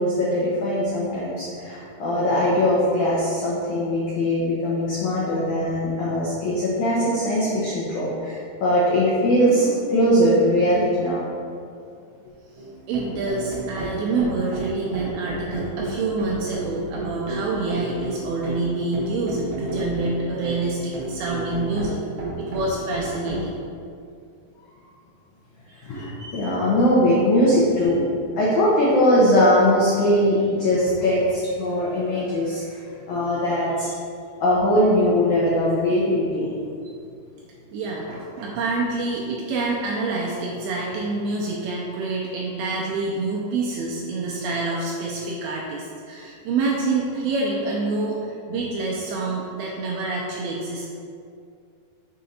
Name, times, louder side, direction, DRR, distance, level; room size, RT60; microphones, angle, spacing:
voice 1, 0.0-11.2 25.8-28.1 28.4-32.6 33.1-33.9 34.4-36.5, equal, 85° left, -7 dB, 1.7 m, -20 dB
sound 1, 12.6-23.5, right 2 dB, 60° right, 1.4 m, -32 dB
voice 2, 12.9-22.0 22.4-23.6 25.7-25.9 33.9-34.0 37.7-50.9, right 3 dB, 80° right, -3 dB, 2.4 m, -27 dB
6.6 x 3.9 x 4.0 m, 2.4 s
omnidirectional pair, 4.7 m